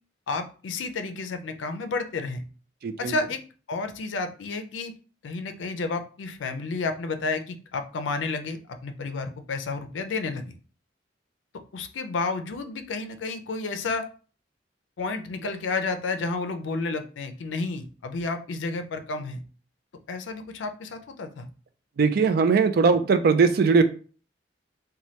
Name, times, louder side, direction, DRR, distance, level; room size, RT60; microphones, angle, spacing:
voice 1, 0.3-2.4 3.0-3.4 3.7-4.9 5.2-10.5 11.7-14.1 15.0-19.4 20.1-21.5, left 3 dB, 85° left, 7 dB, 0.4 m, -31 dB
voice 2, 2.8-3.1 22.0-23.8, right 5 dB, 55° right, 9 dB, 0.4 m, -20 dB
3.1 x 2.2 x 2.8 m, 0.38 s
head